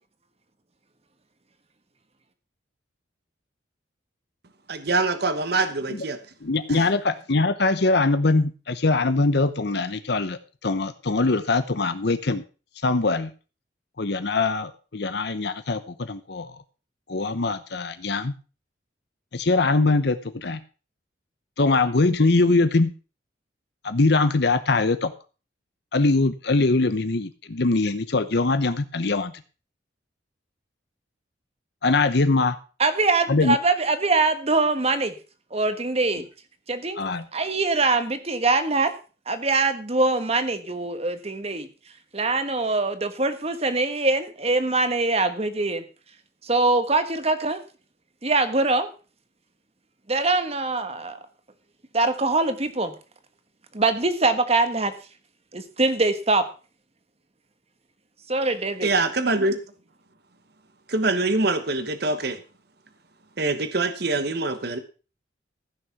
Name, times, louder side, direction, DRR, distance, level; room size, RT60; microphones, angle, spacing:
voice 1, 4.7-6.2 6.7-6.8 58.8-59.6 60.9-62.4 63.4-64.8, right 3 dB, 60° right, 10 dB, 1.2 m, -24 dB
voice 2, 6.4-12.4 12.8-13.3 14.0-16.6 17.1-18.3 19.3-20.6 21.6-22.9 23.8-25.1 25.9-29.3 31.8-32.6 33.3-33.6 37.0-37.2, left 3 dB, 60° left, 12 dB, 0.9 m, -22 dB
voice 3, 32.8-35.1 35.5-36.2 36.7-37.0 37.3-38.9 39.3-41.7 42.1-45.8 46.4-47.6 48.2-48.9 50.1-51.2 51.9-52.9 53.7-54.9 55.5-56.4 58.3-58.9, right 3 dB, 35° right, 10 dB, 1.4 m, -23 dB
15.0 x 6.4 x 5.9 m, 0.35 s
head